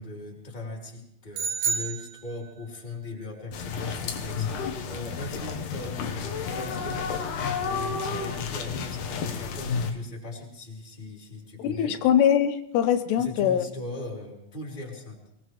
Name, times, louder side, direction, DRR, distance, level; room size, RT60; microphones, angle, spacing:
voice 1, 0.0-7.1 7.6-11.9 13.2-15.2, left 2 dB, 10° left, -1 dB, 2.9 m, -39 dB
sound 1, 1.3-2.8, right 5 dB, 60° right, 2.2 m, -30 dB
sound 2, 3.5-9.9, left 5 dB, 65° left, 2.2 m, -31 dB
voice 2, 11.6-13.7, left 9 dB, 90° left, 9 dB, 2.9 m, -22 dB
24.5 x 18.5 x 3.1 m, 0.79 s
omnidirectional pair, 4.8 m